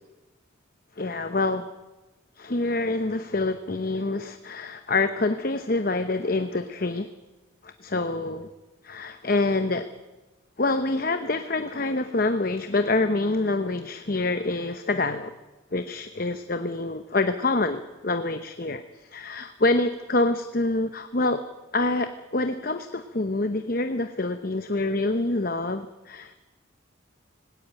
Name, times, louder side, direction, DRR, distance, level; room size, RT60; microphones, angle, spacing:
voice 1, 1.0-1.7 2.4-7.1 7.6-8.5 8.8-9.9 10.6-15.3 15.7-21.4 21.7-26.4, left 2 dB, 45° left, 9 dB, 0.9 m, -26 dB
19.5 x 17.0 x 8.8 m, 1.1 s
head